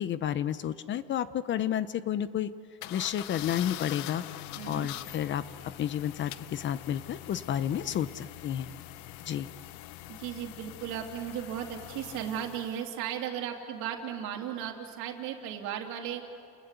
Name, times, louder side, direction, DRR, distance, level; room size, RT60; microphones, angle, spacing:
voice 1, 0.0-2.5 2.9-4.2 4.7-8.7 9.3-9.5, left 10 dB, 35° left, 14 dB, 0.8 m, -31 dB
sound 1, 2.8-12.9, left 15 dB, 65° left, 0.9 m, -44 dB
voice 2, 4.6-4.9 10.1-16.2, right 9 dB, 65° right, 3 dB, 3.3 m, -36 dB
29.5 x 20.5 x 8.4 m, 2.3 s
supercardioid pair, 125°, 31 cm